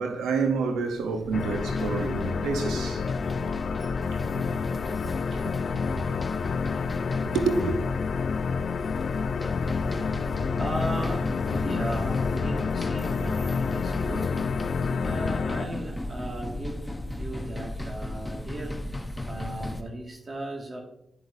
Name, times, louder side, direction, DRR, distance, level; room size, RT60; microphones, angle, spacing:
voice 1, 0.0-3.1 4.1-4.5 5.3-5.5 7.3-7.7, right 5 dB, 90° right, 0.8 m, -28 dB
sound 1, 0.9-19.8, left 1 dB, 15° left, 1.0 m, -36 dB
sound 2, 1.3-15.7, left 5 dB, 65° left, 0.4 m, -29 dB
voice 2, 10.6-14.7 15.0-16.9 17.1-18.8 19.3-20.8, right 1 dB, 45° right, 1.9 m, -36 dB
9.8 x 6.4 x 2.7 m
supercardioid pair, 45°, 0 cm